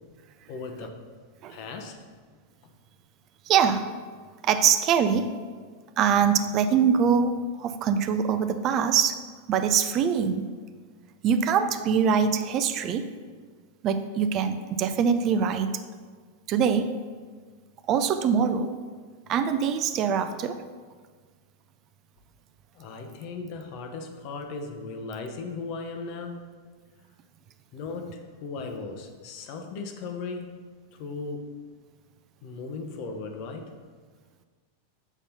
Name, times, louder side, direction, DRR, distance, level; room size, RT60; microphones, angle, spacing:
voice 1, 0.5-1.0 1.5-2.0 2.6-2.7 22.7-26.5 27.7-30.6 30.9-31.6 32.4-33.7, left 4 dB, 45° left, 4 dB, 0.8 m, -37 dB
voice 2, 3.5-3.9 4.4-5.3 6.0-9.2 9.5-10.4 11.2-13.1 13.8-15.8 16.5-16.9 17.9-18.7 19.3-20.6, right 7 dB, 35° right, 10 dB, 0.4 m, -23 dB
7.0 x 4.3 x 5.5 m, 1.6 s
figure-of-eight pair, 90°, 0 cm